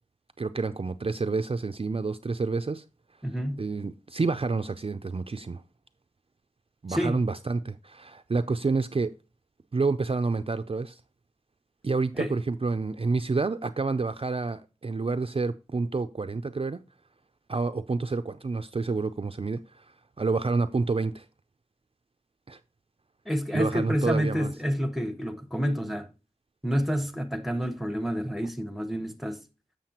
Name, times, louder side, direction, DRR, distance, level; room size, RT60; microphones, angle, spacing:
voice 1, 0.4-2.8 3.6-5.6 6.8-9.1 9.7-11.0 11.8-16.8 17.5-19.9 20.2-21.3 22.5-22.6 23.5-24.5, right 3 dB, 45° right, 0.4 m, -28 dB
voice 2, 3.2-3.6 6.9-7.2 12.2-12.3 23.3-26.1 26.6-29.4, equal, ahead, 0.8 m, -28 dB
7.5 x 7.0 x 2.9 m
wide cardioid pair, 50°, 14 cm